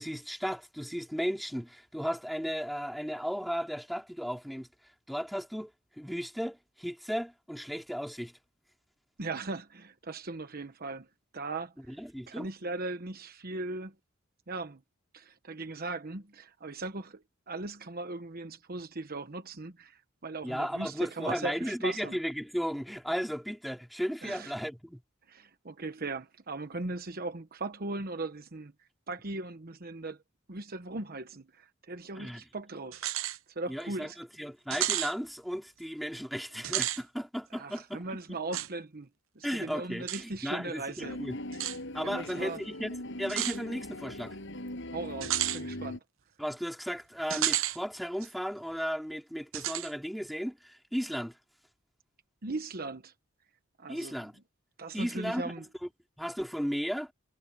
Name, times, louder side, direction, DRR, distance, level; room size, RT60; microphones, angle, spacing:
voice 1, 0.0-4.7 5.1-5.7 6.0-8.3 11.9-12.5 20.4-25.0 32.1-32.5 33.7-38.4 39.4-41.4 41.9-44.4 46.4-51.4 53.9-54.3 54.9-55.5 56.2-57.1, equal, ahead, 3.2 m, -35 dB
voice 2, 9.2-11.1 11.3-12.0 12.3-13.9 14.5-14.8 15.1-22.2 24.2-24.5 25.3-28.7 29.1-30.2 30.5-33.0 33.5-34.2 37.5-39.1 39.3-41.2 42.0-42.6 44.9-46.0 52.4-53.1 53.8-54.2 54.8-55.6, right 2 dB, 50° right, 1.1 m, -38 dB
sound 1, 32.9-33.4 33.8-33.9 34.7-35.1 36.6-37.0 38.5-38.7 40.1-40.2 41.5-41.8 43.3-43.6 45.2-45.6 47.3-47.8 48.2-48.3 49.5-49.9, right 13 dB, 80° right, 0.9 m, -31 dB
sound 2, 41.0-46.0, left 1 dB, 65° left, 6.5 m, -40 dB
head